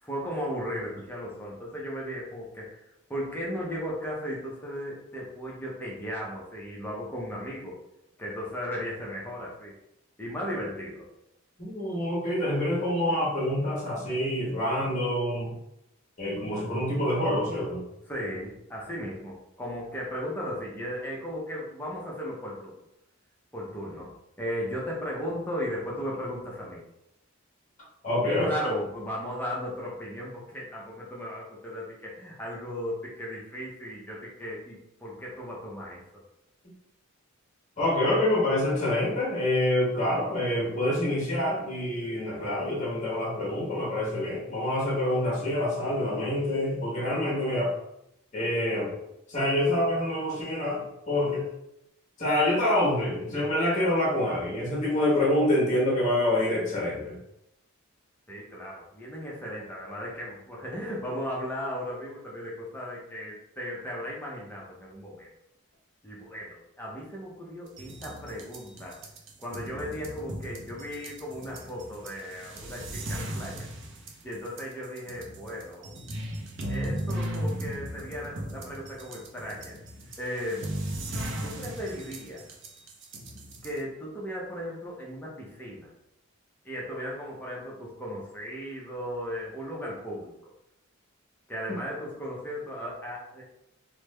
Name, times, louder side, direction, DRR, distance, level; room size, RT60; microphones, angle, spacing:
voice 1, 0.0-2.8 3.1-7.8 8.2-9.7 10.2-11.1 18.0-22.8 23.5-26.8 28.2-36.0 58.3-65.3 66.0-69.0 69.4-73.7 74.2-76.0 76.7-80.7 81.4-82.4 83.6-85.9 86.6-90.3 91.5-93.4, equal, 10° left, -4 dB, 0.5 m, -36 dB
voice 2, 11.6-15.5 16.2-17.8 28.0-28.5 37.8-47.7 48.3-48.9 49.3-51.5 52.2-57.1, left 1 dB, 35° left, -4 dB, 1.1 m, -26 dB
sound 1, 67.7-83.8, right 1 dB, 55° right, 0.5 m, -37 dB
3.2 x 2.1 x 3.2 m, 0.84 s
head